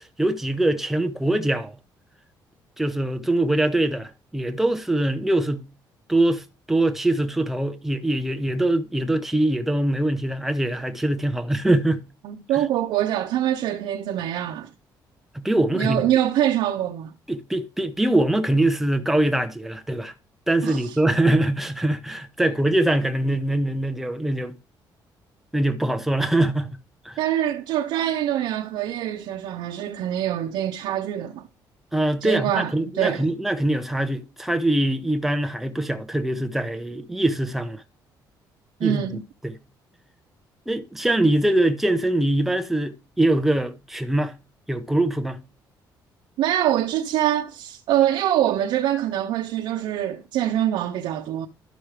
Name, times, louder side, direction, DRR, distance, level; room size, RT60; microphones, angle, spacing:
voice 1, 0.0-1.7 2.8-5.6 6.1-12.0 15.3-16.0 17.3-20.1 20.5-24.5 25.5-26.8 27.0-27.2 31.9-37.8 38.8-39.6 40.7-44.4 44.7-45.4, right 1 dB, 5° right, 0.8 m, -23 dB
voice 2, 12.2-14.7 15.7-17.1 20.6-21.0 27.2-31.5 32.2-33.2 38.8-39.2 46.4-51.5, right 11 dB, 90° right, 0.7 m, -24 dB
12.0 x 6.2 x 3.2 m
cardioid pair, 170°, 8 cm